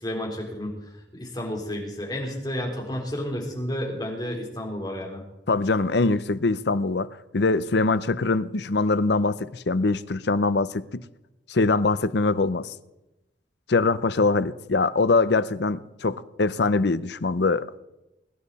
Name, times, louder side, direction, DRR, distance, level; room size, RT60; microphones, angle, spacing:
voice 1, 0.0-0.7 1.1-5.2, left 1 dB, 20° left, 3.8 m, -31 dB
voice 2, 5.5-7.1 7.3-11.0 11.5-12.7 13.7-17.8, left 3 dB, 65° left, 0.6 m, -23 dB
21.5 x 11.5 x 4.2 m
head